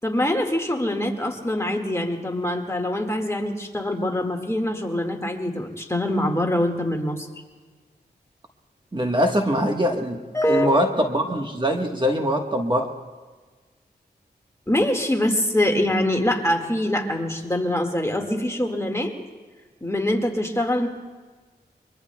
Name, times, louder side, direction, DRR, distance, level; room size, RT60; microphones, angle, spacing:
voice 1, 0.0-7.3 10.3-10.7 14.7-19.1 19.8-20.9, left 1 dB, 15° left, 2 dB, 1.9 m, -24 dB
voice 2, 8.9-10.2 10.5-12.9, equal, 25° right, 2 dB, 1.4 m, -22 dB
23.5 x 23.0 x 2.3 m, 1.4 s
cardioid pair, 55°, 18 cm